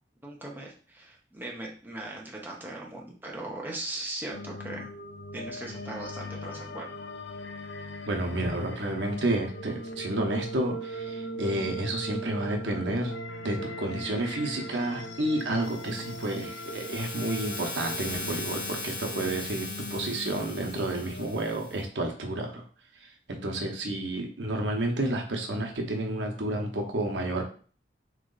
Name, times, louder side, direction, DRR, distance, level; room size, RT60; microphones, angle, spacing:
voice 1, 0.2-4.9 5.3-6.9, right 2 dB, 10° right, -2 dB, 0.8 m, -39 dB
sound 1, 4.3-21.3, equal, 75° left, 0.6 m, -40 dB
voice 2, 8.1-13.1 13.4-22.6 23.0-27.4, right 1 dB, 80° right, 1 dB, 0.9 m, -30 dB
sound 2, 15.6-21.8, left 3 dB, 45° left, 1.3 m, -39 dB
3.8 x 3.2 x 3.9 m, 0.42 s
head